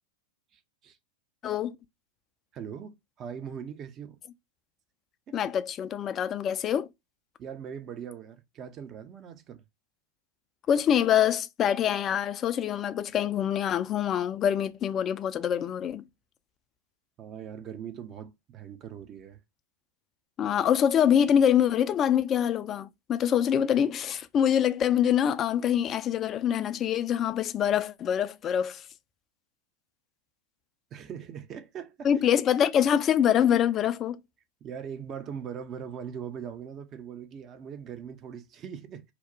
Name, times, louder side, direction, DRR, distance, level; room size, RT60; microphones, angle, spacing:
voice 1, 0.5-1.0 2.5-4.2 5.3-5.4 7.4-9.6 17.2-19.4 30.9-32.1 34.6-39.0, right 8 dB, 30° right, 0.5 m, -41 dB
voice 2, 1.4-1.8 5.3-6.9 10.7-16.1 20.4-28.8 32.0-34.2, left 9 dB, 30° left, 0.3 m, -25 dB
2.9 x 2.1 x 3.9 m
figure-of-eight pair, 90°, 0 cm